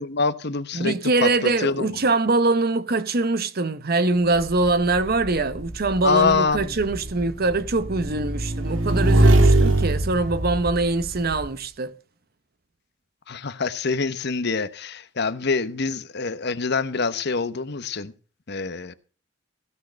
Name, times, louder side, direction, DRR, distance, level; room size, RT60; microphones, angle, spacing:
voice 1, 0.0-1.9 6.0-6.7 13.3-18.1 18.5-18.9, left 4 dB, 60° left, 1.0 m, -25 dB
voice 2, 0.7-11.9, right 3 dB, 50° right, 0.9 m, -23 dB
Motorcycle / Engine, 4.4-11.5, right 1 dB, 75° right, 1.9 m, -22 dB
16.0 x 6.5 x 5.1 m
head